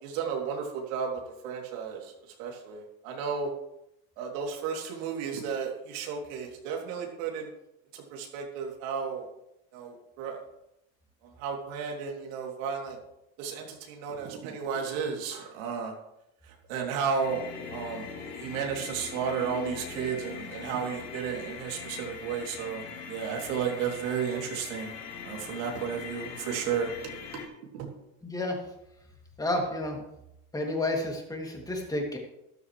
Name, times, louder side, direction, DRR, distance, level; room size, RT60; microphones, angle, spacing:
voice 1, 0.0-2.1 2.4-3.5 4.2-7.5 7.9-9.3 9.7-10.4 11.4-13.0 13.4-15.9 16.4-24.9 25.2-26.9 27.7-27.9, right 6 dB, 75° right, 1 dB, 3.1 m, -33 dB
sound 1, 17.2-27.5, left 6 dB, 75° left, 3.7 m, -41 dB
voice 2, 28.2-28.6 29.4-30.0 30.5-32.2, left 1 dB, 10° left, 0 dB, 2.7 m, -30 dB
13.0 x 12.0 x 3.3 m, 0.85 s
supercardioid pair, 130°, 40 cm